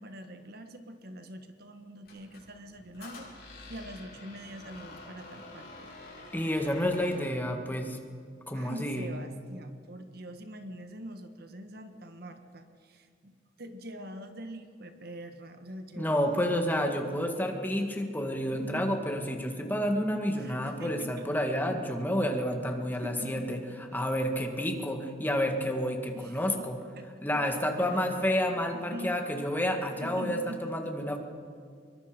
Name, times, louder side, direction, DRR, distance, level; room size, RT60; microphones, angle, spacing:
voice 1, 0.0-6.6 8.5-16.6 18.5-18.9 20.4-21.3 22.9-23.6 26.1-26.7 27.0-28.0 28.7-29.2 30.0-30.9, equal, 55° right, 7 dB, 1.5 m, -44 dB
Squeak, 2.0-7.3, left 2 dB, 55° left, 6.4 m, -48 dB
voice 2, 6.3-8.0 8.5-9.1 16.0-23.6 23.9-26.8 27.2-31.2, equal, 10° left, 3 dB, 1.9 m, -30 dB
25.0 x 22.5 x 5.2 m, 2.2 s
head